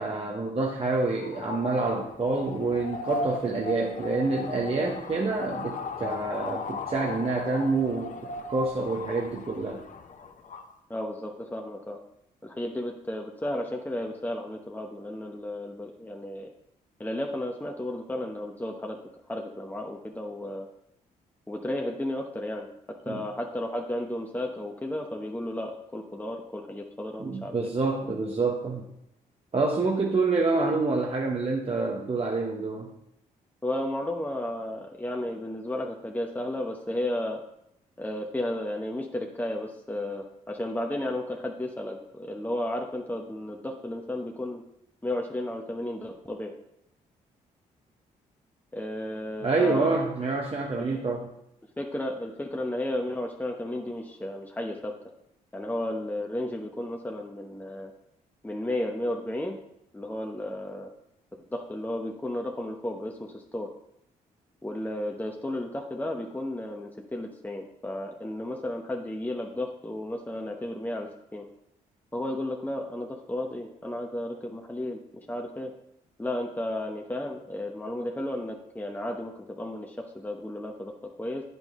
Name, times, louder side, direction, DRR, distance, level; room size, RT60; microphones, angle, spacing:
voice 1, 0.0-8.1 8.5-9.8 23.1-23.2 27.2-28.9 29.5-32.9 49.4-51.3, right 3 dB, 35° right, -1 dB, 1.1 m, -27 dB
sound 1, 1.0-10.7, left 3 dB, 50° left, 0.8 m, -37 dB
voice 2, 10.9-12.0 12.4-16.5 17.0-19.0 19.3-20.7 21.5-22.7 23.1-28.1 33.6-37.4 38.0-44.6 45.0-46.5 48.7-50.0 50.8-51.1 51.8-54.9 55.5-57.9 58.4-59.6 59.9-60.9 61.5-63.7 64.6-71.5 72.1-75.0 75.3-75.7 76.2-79.3 79.6-80.9 81.2-81.4, left 1 dB, 10° left, 1 dB, 1.0 m, -33 dB
8.8 x 5.4 x 3.7 m, 0.79 s
supercardioid pair, 50°, 17 cm